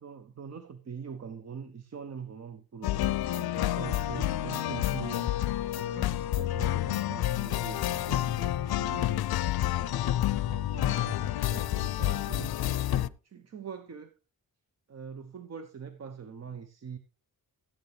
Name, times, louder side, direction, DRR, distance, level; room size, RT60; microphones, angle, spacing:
voice 1, 0.0-5.3 5.7-9.2 9.7-12.5 12.9-14.1 14.9-17.0, right 6 dB, 45° right, 0.8 m, -43 dB
sound 1, 2.8-13.1, left 13 dB, 85° left, 0.5 m, -29 dB
13.0 x 9.3 x 3.2 m
wide cardioid pair, 175°, 36 cm